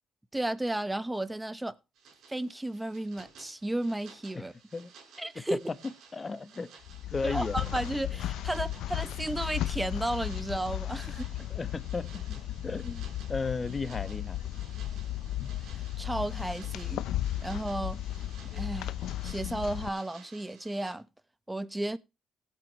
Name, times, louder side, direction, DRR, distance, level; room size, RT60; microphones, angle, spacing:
voice 1, 0.3-1.7 2.3-4.5 5.2-5.6 7.2-11.3 16.0-17.0 17.4-18.0 18.5-19.0 19.2-21.1 21.5-22.0, right 1 dB, 10° right, 1.1 m, -33 dB
sound 1, 1.9-20.9, right 6 dB, 80° right, 4.9 m, -55 dB
voice 2, 6.1-6.7 7.1-7.6 11.5-12.2 12.6-14.4, left 4 dB, 30° left, 1.3 m, -34 dB
sound 2, 6.8-19.9, left 13 dB, 80° left, 0.7 m, -35 dB
17.5 x 8.4 x 3.0 m
supercardioid pair, 70°, 0 cm